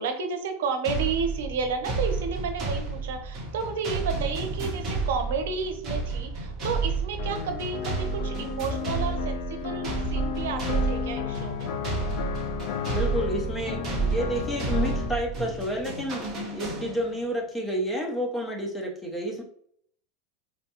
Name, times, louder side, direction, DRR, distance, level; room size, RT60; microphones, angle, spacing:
voice 1, 0.0-11.7, right 5 dB, 85° right, 5 dB, 0.6 m, -31 dB
sound 1, 0.8-17.3, right 4 dB, 25° right, 1.1 m, -31 dB
sound 2, 7.2-15.2, left 8 dB, 55° left, 0.4 m, -34 dB
voice 2, 12.9-19.4, equal, 5° left, 0 dB, 0.5 m, -30 dB
4.2 x 2.2 x 2.8 m, 0.64 s
supercardioid pair, 170°, 0 cm